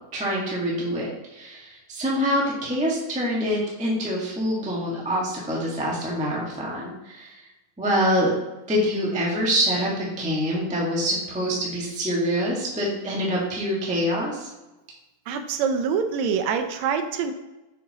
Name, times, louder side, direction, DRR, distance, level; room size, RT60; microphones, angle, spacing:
voice 1, 0.1-7.5 7.8-8.3 8.7-14.5, equal, 10° right, -4 dB, 0.3 m, -25 dB
voice 2, 15.3-17.3, right 6 dB, 80° right, 7 dB, 1.8 m, -25 dB
6.7 x 6.7 x 2.9 m, 1.0 s
omnidirectional pair, 3.3 m